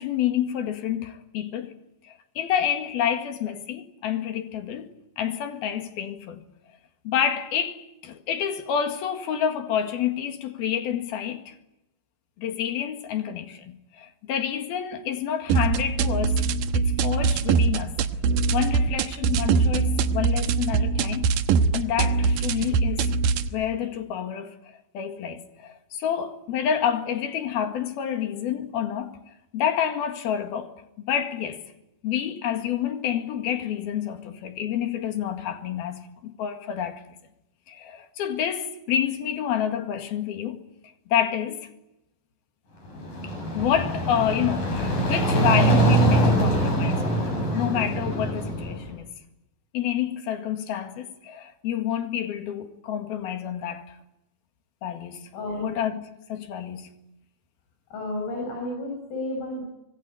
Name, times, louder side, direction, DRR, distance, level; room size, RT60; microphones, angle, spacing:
voice 1, 0.0-1.7 2.0-6.5 7.1-11.6 12.4-16.4 16.7-18.0 18.5-21.3 21.7-23.1 23.5-29.2 29.5-30.7 31.0-31.7 32.0-37.0 37.7-40.6 41.1-41.7 43.2-49.1 49.7-53.8 54.8-55.3 55.6-56.0 56.3-56.9, left 9 dB, 60° left, 3.4 m, -28 dB
sound 1, 15.5-23.5, right 5 dB, 80° right, 1.9 m, -23 dB
sound 2, 42.9-48.9, right 2 dB, 40° left, 8.9 m, -23 dB
voice 2, 55.3-55.8 57.9-59.6, left 1 dB, 90° left, 10.5 m, -32 dB
25.5 x 22.5 x 9.5 m
omnidirectional pair, 5.7 m